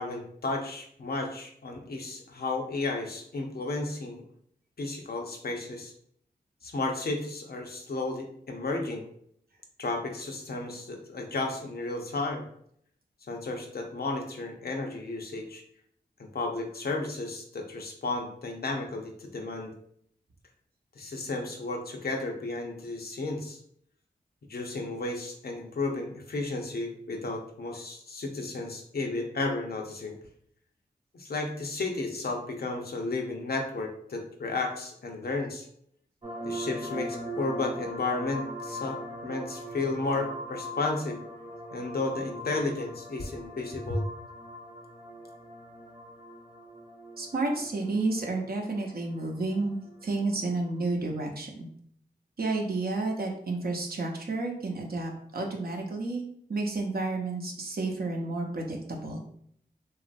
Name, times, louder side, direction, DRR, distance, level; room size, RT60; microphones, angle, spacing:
voice 1, 0.0-4.2 4.8-5.9 6.6-9.1 9.8-12.4 13.3-15.6 16.2-19.7 21.0-23.6 24.5-30.2 31.1-35.7 36.4-41.2 41.7-44.1, left 2 dB, 65° left, 2 dB, 0.6 m, -33 dB
sound 1, 36.2-50.8, equal, 35° right, 1.0 m, -41 dB
voice 2, 47.2-49.8 50.0-51.7 52.4-56.2 56.5-59.2, right 3 dB, 60° right, 1 dB, 0.7 m, -31 dB
3.0 x 2.4 x 2.5 m, 0.66 s
cardioid pair, 40°, 17 cm